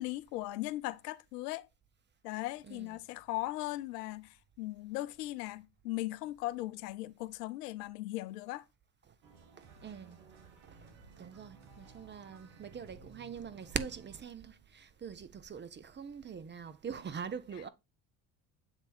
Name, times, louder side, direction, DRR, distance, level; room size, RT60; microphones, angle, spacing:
voice 1, 0.0-1.7 2.2-8.7, left 17 dB, 80° left, 0.6 m, -38 dB
voice 2, 2.7-3.0 9.6-10.2 10.6-10.8 11.2-17.7, right 7 dB, 25° right, 0.6 m, -43 dB
sound 1, 9.2-14.2, right 4 dB, 65° right, 1.6 m, -57 dB
7.9 x 3.4 x 4.1 m
hypercardioid pair, 70°, 46 cm